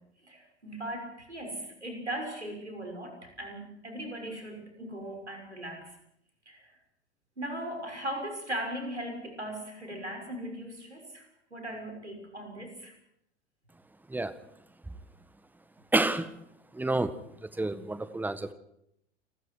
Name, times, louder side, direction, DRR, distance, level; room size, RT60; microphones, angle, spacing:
voice 1, 0.2-6.0 6.5-6.8 7.4-12.9, right 1 dB, 85° right, 3 dB, 6.3 m, -38 dB
voice 2, 15.9-16.3 16.7-17.1 17.4-18.5, right 2 dB, 5° right, 13 dB, 1.5 m, -29 dB
29.0 x 22.0 x 4.9 m, 0.76 s
figure-of-eight pair, 80°, 33 cm